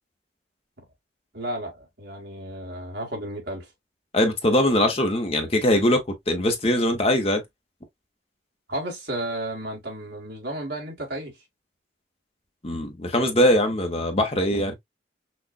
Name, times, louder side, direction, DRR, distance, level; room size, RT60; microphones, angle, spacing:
voice 1, 1.3-3.7 8.7-11.3, right 1 dB, 60° right, 2.0 m, -33 dB
voice 2, 4.1-7.4 12.6-14.7, left 1 dB, 30° left, 0.9 m, -22 dB
6.1 x 2.4 x 2.5 m
head